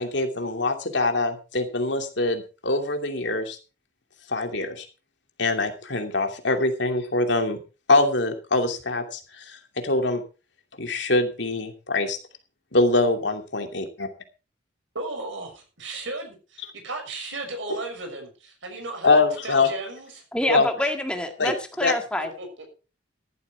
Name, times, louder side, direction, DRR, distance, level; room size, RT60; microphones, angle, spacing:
voice 1, 0.0-3.6 4.3-4.8 5.4-7.6 7.9-9.6 9.8-10.2 10.8-12.2 12.7-14.1 19.0-19.7 20.5-20.7 21.4-21.5 21.8-21.9, left 2 dB, 70° left, 5 dB, 2.7 m, -23 dB
voice 2, 14.9-20.2 22.4-22.7, right 3 dB, 85° right, 4 dB, 6.3 m, -35 dB
voice 3, 20.3-22.3, left 1 dB, 5° left, 5 dB, 1.8 m, -27 dB
14.0 x 12.0 x 4.5 m, 0.33 s
head